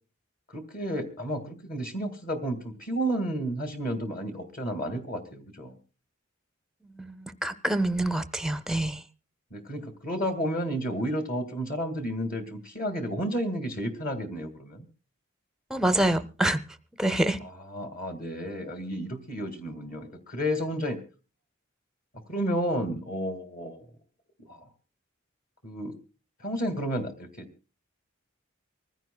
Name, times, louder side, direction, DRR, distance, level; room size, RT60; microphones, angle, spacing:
voice 1, 0.5-5.8 9.5-14.9 17.4-21.0 22.3-23.9 24.5-24.7 25.6-26.0 26.4-27.5, equal, 45° left, 6 dB, 2.0 m, -32 dB
voice 2, 6.9-9.0 15.7-16.6 17.0-17.4, right 1 dB, 5° right, 10 dB, 0.6 m, -26 dB
25.0 x 15.5 x 2.2 m, 0.35 s
head